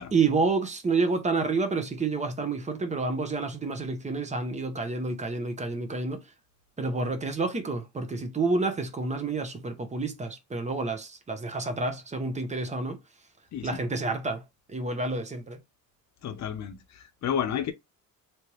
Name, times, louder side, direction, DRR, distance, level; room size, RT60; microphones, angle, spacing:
voice 1, 0.0-6.3 6.8-13.0 13.6-15.6, right 3 dB, 20° right, 0.9 m, -29 dB
voice 2, 16.2-17.7, left 8 dB, 55° left, 0.8 m, -31 dB
3.4 x 3.0 x 3.0 m
cardioid pair, 135°, 34 cm